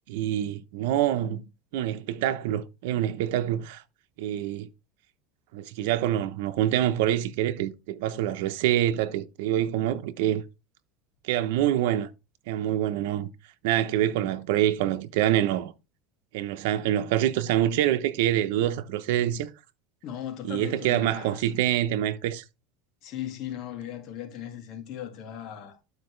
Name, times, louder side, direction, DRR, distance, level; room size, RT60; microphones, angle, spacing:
voice 1, 0.1-1.4 1.7-3.8 4.2-4.7 5.5-10.4 11.2-12.1 12.5-13.3 13.6-15.7 16.3-19.5 20.4-22.4, right 12 dB, 75° right, 0.9 m, -26 dB
voice 2, 20.0-21.4 23.0-25.8, left 10 dB, 50° left, 2.3 m, -38 dB
12.0 x 4.8 x 3.3 m
supercardioid pair, 140°, 0 cm